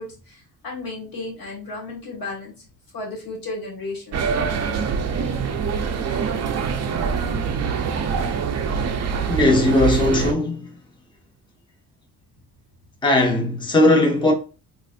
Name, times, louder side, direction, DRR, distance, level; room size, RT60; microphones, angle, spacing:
voice 1, 0.0-2.5 2.9-4.2, left 2 dB, 60° left, 1.6 m, -33 dB
sound 1, 4.1-10.3, right 6 dB, 40° right, 0.4 m, -24 dB
voice 2, 9.3-10.7 13.0-14.3, left 2 dB, 10° left, 0.7 m, -18 dB
3.9 x 2.5 x 2.4 m
cardioid pair, 140°, 40 cm